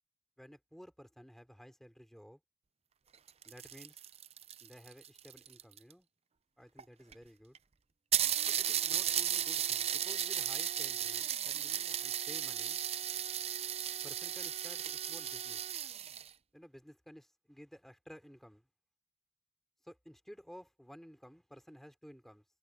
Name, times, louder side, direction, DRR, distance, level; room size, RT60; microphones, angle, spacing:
voice 1, 0.4-2.4 3.4-4.0 4.6-6.1 6.6-7.6 8.5-12.8 14.0-15.6 16.5-18.7 19.8-22.4, equal, ahead, 3.7 m, -54 dB
sound 1, 3.1-5.9 6.8-6.9 7.1-7.2 7.5-7.6 8.1-16.3, right 10 dB, 30° right, 0.6 m, -35 dB
head